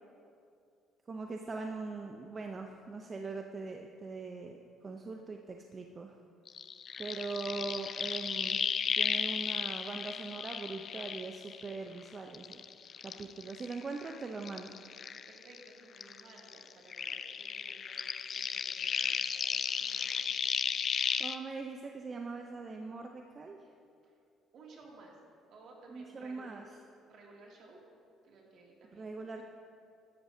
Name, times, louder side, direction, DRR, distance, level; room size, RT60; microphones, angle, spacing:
voice 1, 1.1-6.2 7.0-8.6 9.0-12.6 13.0-14.8 21.2-23.6 25.9-26.6 28.9-29.4, right 3 dB, 35° right, 3 dB, 0.6 m, -41 dB
sound 1, 6.5-12.0 12.3-15.7 16.0-21.4, left 7 dB, 50° left, 0.4 m, -35 dB
voice 2, 15.3-18.0 18.3-20.4 20.7-20.8 24.5-25.2 25.5-26.5 27.1-27.8 28.2-29.3, right 3 dB, 65° right, -2 dB, 2.5 m, -56 dB
13.0 x 11.5 x 2.8 m, 2.4 s
supercardioid pair, 75°, 0 cm